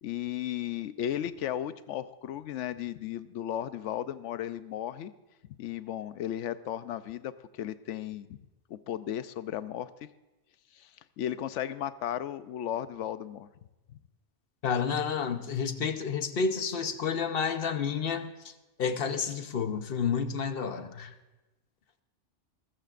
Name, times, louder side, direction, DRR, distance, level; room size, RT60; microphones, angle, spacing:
voice 1, 0.0-5.1 5.6-8.3 8.7-10.1 10.7-10.9 11.2-13.5, left 11 dB, 75° left, 14 dB, 0.9 m, -35 dB
voice 2, 14.6-18.5 18.8-21.1, left 6 dB, 55° left, 9 dB, 1.0 m, -30 dB
21.0 x 14.0 x 2.5 m, 1.1 s
omnidirectional pair, 1.2 m